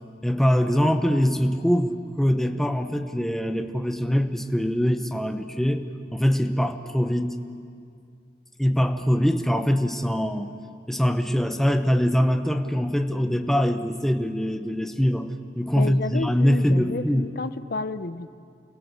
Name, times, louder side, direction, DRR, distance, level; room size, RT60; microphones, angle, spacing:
voice 1, 0.2-7.4 8.6-10.5 10.9-15.3 15.6-17.3, equal, ahead, 6 dB, 1.0 m, -23 dB
voice 2, 15.7-18.4, left 3 dB, 60° left, 12 dB, 0.6 m, -31 dB
29.0 x 21.5 x 6.9 m, 2.3 s
head